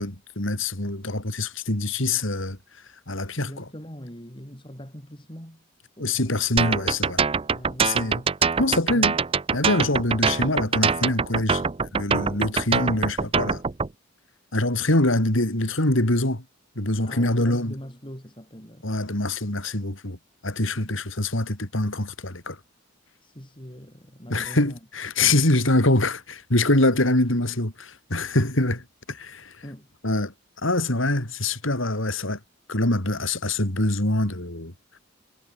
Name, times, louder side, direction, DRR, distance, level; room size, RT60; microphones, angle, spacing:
voice 1, 0.0-2.6 3.1-3.6 6.0-7.2 7.8-8.2 8.6-9.1 9.5-11.7 11.9-13.6 14.5-16.4 16.8-17.7 18.8-20.2 20.4-22.6 24.3-29.6 30.0-30.3 30.6-32.4 32.7-34.7, left 2 dB, 70° left, 4.1 m, -24 dB
voice 2, 3.4-5.6 6.0-6.4 7.5-9.2 17.0-18.9 20.8-21.0 23.2-24.8 26.7-27.1 29.6-29.9, equal, 25° left, 6.6 m, -41 dB
sound 1, 6.6-13.9, right 5 dB, 25° right, 0.5 m, -23 dB
head